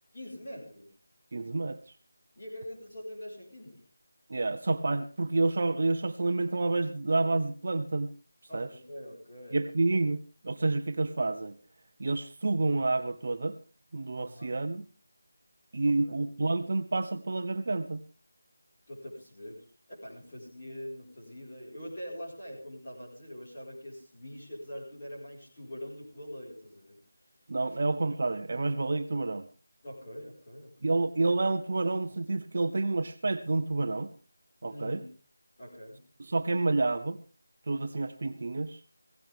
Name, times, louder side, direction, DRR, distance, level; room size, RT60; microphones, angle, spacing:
voice 1, 0.1-0.9 2.3-3.8 8.5-9.6 14.2-14.6 15.8-16.2 18.9-27.0 27.6-27.8 29.8-31.0 34.7-35.1 35.6-36.0, equal, 20° left, -4 dB, 4.9 m, -44 dB
voice 2, 1.3-1.8 4.3-8.1 8.5-8.7 9.5-11.6 12.0-13.6 13.9-14.9 15.7-18.0 27.5-29.5 30.8-34.1 34.6-35.0 36.2-37.2 37.7-38.8, right 3 dB, 35° right, 8 dB, 0.7 m, -29 dB
16.5 x 16.0 x 3.6 m, 0.34 s
figure-of-eight pair, 180°, 0 cm